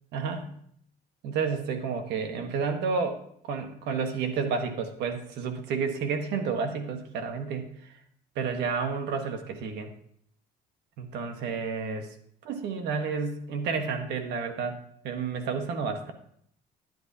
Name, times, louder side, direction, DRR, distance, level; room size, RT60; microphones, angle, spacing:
voice 1, 0.1-0.5 1.2-7.9 8.3-9.9 11.0-12.1 12.4-14.8 15.0-16.1, right 5 dB, 80° right, 6 dB, 1.2 m, -31 dB
10.5 x 10.0 x 2.8 m, 0.66 s
cardioid pair, 110°, 17 cm